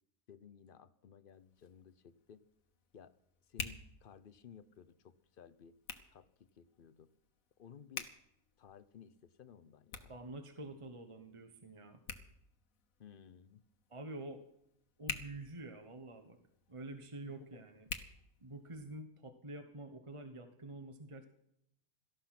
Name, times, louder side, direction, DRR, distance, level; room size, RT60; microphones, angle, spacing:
voice 1, 0.3-2.4 2.9-3.1 3.5-5.7 6.1-7.1 7.6-8.1 8.6-10.1 13.0-13.6 17.2-17.6, left 7 dB, 50° left, 15 dB, 0.7 m, -57 dB
Hands, 1.3-19.0, left 6 dB, 65° left, 1.5 m, -51 dB
voice 2, 10.1-12.0 13.9-14.4 15.0-16.4 16.7-17.9 18.4-21.2, right 2 dB, 25° right, 7 dB, 1.1 m, -47 dB
17.5 x 13.0 x 5.9 m, 0.78 s
omnidirectional pair, 1.5 m